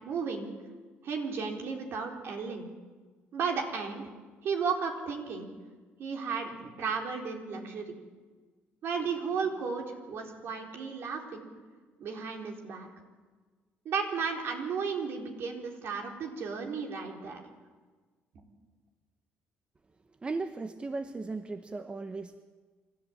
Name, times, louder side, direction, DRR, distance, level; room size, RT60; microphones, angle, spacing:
voice 1, 0.0-0.5 1.0-2.7 3.3-4.1 4.4-5.5 6.0-8.0 8.8-11.5 12.0-12.9 13.8-17.5 18.3-18.4, right 5 dB, 60° right, 2 dB, 4.2 m, -34 dB
voice 2, 20.2-22.4, right 3 dB, 25° right, 9 dB, 1.0 m, -36 dB
26.5 x 13.5 x 8.9 m, 1.4 s
cardioid pair, 95°, 4 cm